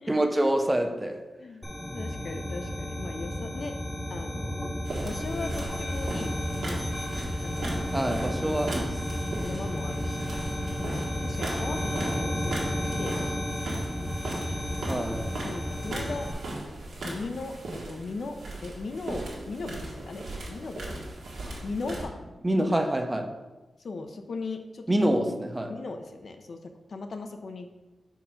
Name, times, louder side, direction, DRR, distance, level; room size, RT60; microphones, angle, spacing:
voice 1, 0.1-1.2 7.9-9.0 14.9-15.3 22.4-23.3 24.9-25.7, right 1 dB, 20° right, 5 dB, 0.6 m, -26 dB
sound 1, 1.6-16.3, equal, 15° left, 0.9 m, -32 dB
voice 2, 1.9-3.7 4.1-6.3 6.6-6.8 7.4-7.7 8.5-8.7 9.4-10.3 10.8-13.5 14.8-16.3 17.0-21.0 21.6-22.1 22.5-22.8 23.8-24.9 25.7-27.8, left 3 dB, 60° left, 5 dB, 0.6 m, -38 dB
sound 2, 4.8-22.0, right 2 dB, 90° right, 1.6 m, -38 dB
5.0 x 4.6 x 5.7 m, 1.1 s
wide cardioid pair, 110°, 0 cm